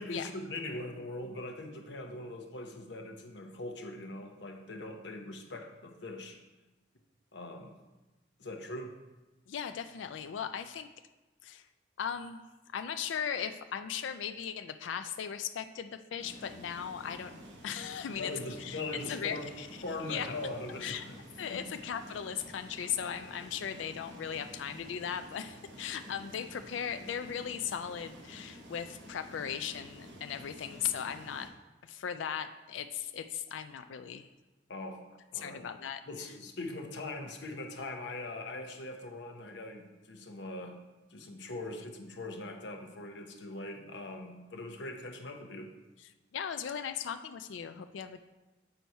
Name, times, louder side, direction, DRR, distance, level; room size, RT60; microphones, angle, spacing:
voice 1, 0.0-6.4 7.3-7.8 8.4-9.0 18.2-19.5 19.8-21.2 21.5-21.7 34.7-35.0 35.3-35.7 36.1-40.8 41.1-45.7, left 2 dB, 75° left, 3 dB, 0.9 m, -41 dB
voice 2, 9.5-10.9 11.4-11.7 12.0-12.4 12.7-18.3 18.6-18.8 19.1-19.7 20.1-20.3 20.8-21.0 21.4-31.5 31.8-34.3 35.4-36.0 46.0-48.2, left 8 dB, 90° left, 9 dB, 0.4 m, -38 dB
sound 1, 16.2-31.5, equal, 75° right, 1.0 m, -50 dB
7.8 x 4.1 x 4.5 m, 1.1 s
head